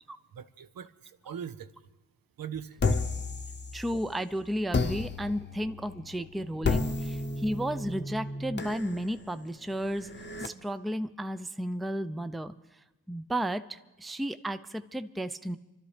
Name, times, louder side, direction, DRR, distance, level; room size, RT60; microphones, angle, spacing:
voice 1, 0.3-1.9 2.4-2.8, right 8 dB, 75° right, 10 dB, 0.8 m, -41 dB
sound 1, 2.8-4.2 4.7-10.5, left 3 dB, 30° left, 0.8 m, -33 dB
voice 2, 3.7-10.1 10.4-12.5 13.1-15.6, equal, ahead, 11 dB, 0.4 m, -33 dB
27.0 x 12.5 x 3.3 m, 1.0 s
cardioid pair, 80°, 35 cm